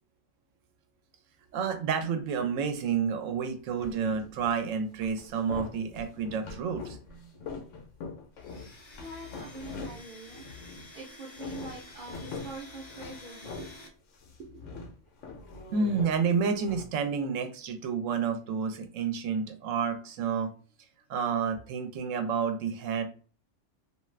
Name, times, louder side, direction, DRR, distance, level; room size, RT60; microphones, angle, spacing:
voice 1, 1.5-7.3 15.7-20.5 21.1-23.0, right 6 dB, 80° right, 7 dB, 1.0 m, -30 dB
sound 1, 3.8-4.6 5.0-11.0 11.2-13.9 14.1-16.8, left 4 dB, 75° left, 0.9 m, -43 dB
Domestic sounds home sounds, 8.4-13.9, left 2 dB, 35° left, 0.4 m, -50 dB
voice 2, 9.0-10.4 10.9-13.9 14.4-14.8, right 2 dB, 50° right, -3 dB, 0.7 m, -44 dB
2.5 x 2.3 x 3.2 m, 0.39 s
omnidirectional pair, 1.3 m